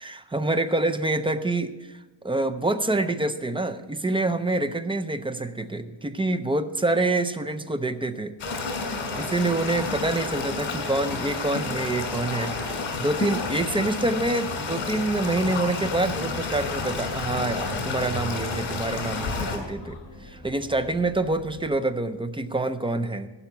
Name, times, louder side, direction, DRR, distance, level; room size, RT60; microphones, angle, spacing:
voice 1, 0.0-8.4 9.1-12.7 13.0-23.3, right 2 dB, 15° right, 10 dB, 0.3 m, -26 dB
sound 1, 8.4-19.6, left 3 dB, 75° left, 2.7 m, -30 dB
sound 2, 16.2-21.8, left 3 dB, 50° left, 2.8 m, -41 dB
15.0 x 5.7 x 7.0 m, 1.1 s
wide cardioid pair, 170°, 46 cm